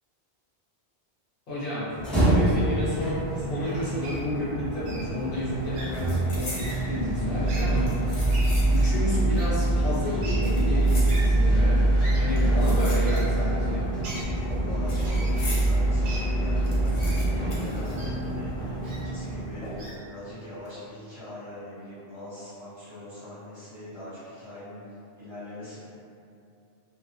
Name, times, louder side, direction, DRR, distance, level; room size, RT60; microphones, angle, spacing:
voice 1, 1.5-1.9 2.2-8.4 8.7-11.9 12.1-13.9, left 1 dB, 55° left, -10 dB, 1.0 m, -31 dB
sound 1, 1.9-20.0, right 1 dB, ahead, 0.4 m, -25 dB
Wild animals, 4.0-4.2 4.9-5.0 5.7-5.9 6.5-6.8 7.4-7.6 8.3-8.7 9.4-9.5 10.2-10.4 11.1-11.2 12.0-12.2 13.0-13.2 14.0-14.3 15.0-15.3 16.0-16.2 17.0-17.2 18.0-18.1 18.9-19.0 19.8-20.0, right 1 dB, 85° right, 0.9 m, -38 dB
sound 2, 5.1-5.2 5.4-6.8 7.6-9.0 9.3-9.4 10.2-11.6 12.3-13.5 13.8-15.8 16.2-16.3 16.4-18.6 18.8-18.9 19.6-20.0 20.5-20.7, left 2 dB, 85° left, 1.0 m, -41 dB
voice 2, 12.4-12.7 14.4-24.8 25.2-25.8, left 1 dB, 25° right, -14 dB, 1.0 m, -42 dB
2.3 x 2.1 x 2.6 m, 2.5 s
omnidirectional pair, 1.1 m